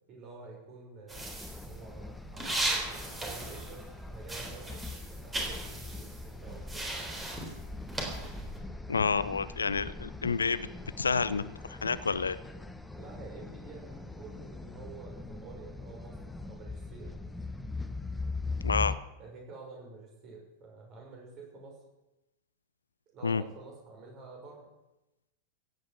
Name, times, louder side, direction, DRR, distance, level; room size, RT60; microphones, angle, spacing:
voice 1, 0.1-2.6 3.2-7.2 12.9-17.1 19.2-21.7 23.1-24.7, right 4 dB, 35° right, 0 dB, 6.1 m, -49 dB
sound 1, 1.1-19.0, left 3 dB, 5° left, 1.0 m, -41 dB
sound 2, 1.1-4.0 4.2-8.6, right 2 dB, 15° right, 3.9 m, -37 dB
voice 2, 8.9-10.7 11.0-11.4 11.7-12.4 18.6-19.0 23.2-23.4, left 5 dB, 75° left, 16 dB, 0.6 m, -29 dB
16.0 x 9.2 x 7.8 m, 0.95 s
figure-of-eight pair, 90°, 0 cm